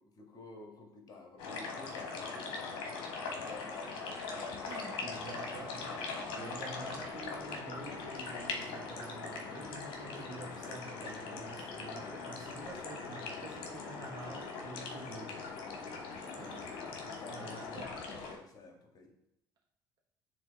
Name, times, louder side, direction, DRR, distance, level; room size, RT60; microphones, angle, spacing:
voice 1, 0.0-4.7 6.5-6.6 16.0-19.1, left 3 dB, 40° left, 3 dB, 1.7 m, -53 dB
sound 1, 1.4-18.4, left 4 dB, 55° left, 1.3 m, -41 dB
voice 2, 4.6-15.4 16.4-17.0 17.3-18.0, right 3 dB, 40° right, -1 dB, 1.4 m, -48 dB
8.4 x 3.5 x 4.1 m, 0.81 s
figure-of-eight pair, 55°, 10 cm